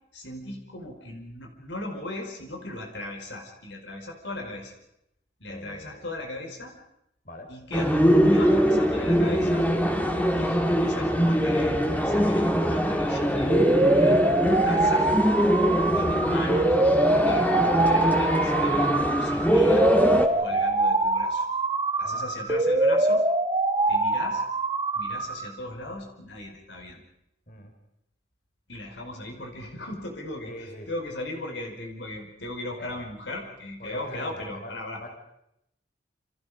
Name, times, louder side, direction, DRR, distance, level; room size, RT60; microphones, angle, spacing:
voice 1, 0.1-4.8 5.4-6.7 7.5-9.7 10.3-15.1 15.9-16.8 17.2-19.9 20.4-21.4 22.0-23.2 23.9-24.4 24.9-27.0 28.7-35.0, left 1 dB, 90° left, 3 dB, 5.0 m, -37 dB
voice 2, 5.5-6.0 7.2-7.5 10.2-10.3 16.0-16.2 20.5-20.6 22.0-22.2 27.5-27.7 30.4-30.9 32.8-33.0 33.8-35.1, left 1 dB, 50° left, 3 dB, 5.2 m, -42 dB
sound 1, 7.7-20.3, equal, 10° left, 2.2 m, -23 dB
sound 2, 13.5-25.5, right 2 dB, 25° right, 1.8 m, -24 dB
29.0 x 27.5 x 5.1 m, 0.81 s
head